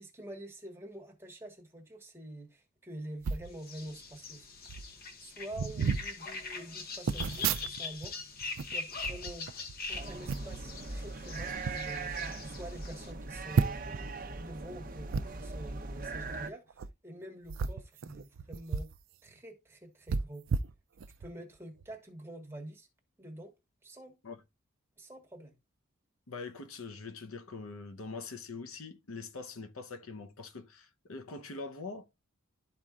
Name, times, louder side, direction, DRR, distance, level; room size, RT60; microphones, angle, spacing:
voice 1, 0.0-4.5 5.2-8.2 8.7-9.5 9.9-18.9 19.2-20.5 21.2-22.9 23.2-23.5 23.8-24.2 25.0-25.5, right 1 dB, 10° right, 1.3 m, -47 dB
sound 1, 3.2-3.5 4.3-4.4 4.7-4.9 5.5-6.1 7.1-8.1 8.4-9.8 10.3-10.6 11.4-11.8 12.3-12.4 12.6-12.7 13.5-14.0 15.1-15.2 16.7-16.9 17.5-19.0 19.3-19.4 20.1-21.3 21.8-21.9, right 5 dB, 65° right, 0.4 m, -33 dB
sound 2, 3.6-13.1, left 4 dB, 45° left, 1.0 m, -42 dB
sound 3, 9.9-16.5, right 3 dB, 40° right, 0.8 m, -40 dB
voice 2, 26.3-32.1, left 4 dB, 80° left, 0.9 m, -43 dB
12.5 x 4.4 x 2.4 m
head